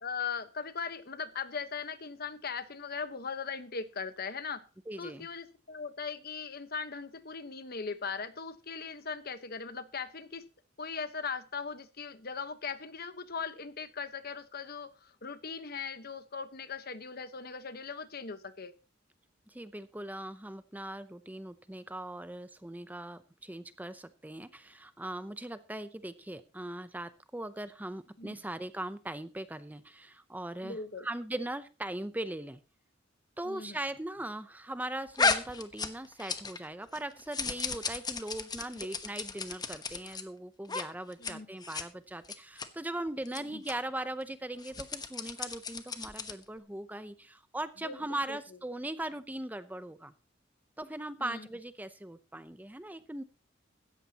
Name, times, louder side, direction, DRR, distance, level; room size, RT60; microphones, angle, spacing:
voice 1, 0.0-4.6 5.0-10.4 10.8-18.7 28.2-28.3 30.6-31.1 33.4-33.8 41.2-41.5 43.3-43.6 47.8-48.4 51.2-51.5, left 5 dB, 50° left, 11 dB, 1.2 m, -39 dB
voice 2, 4.9-5.3 19.5-32.6 33.4-50.1 50.8-53.2, right 1 dB, 10° right, 12 dB, 0.7 m, -40 dB
sound 1, 35.2-36.7 36.9-40.2 40.6-40.8 41.1-41.3 41.6-41.8 42.2-42.7 43.2-43.4 43.7-43.8 44.5-46.4, left 4 dB, 20° left, 1.1 m, -34 dB
16.5 x 14.0 x 2.9 m, 0.31 s
head